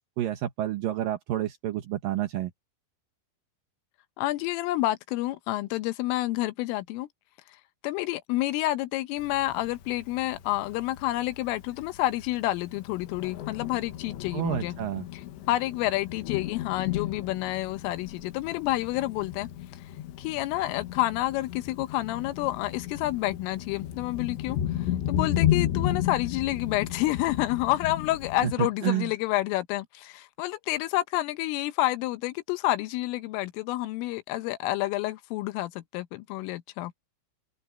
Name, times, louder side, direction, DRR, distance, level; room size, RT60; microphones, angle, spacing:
voice 1, 0.2-2.5 14.3-15.0 28.4-29.1, right 12 dB, 70° right, 2.1 m, -29 dB
voice 2, 4.2-7.1 7.8-14.8 15.1-15.2 15.5-19.5 20.2-37.0, left 16 dB, 85° left, 3.6 m, -29 dB
Thunder, 9.2-28.5, left 11 dB, 70° left, 3.5 m, -34 dB
omnidirectional pair, 5.7 m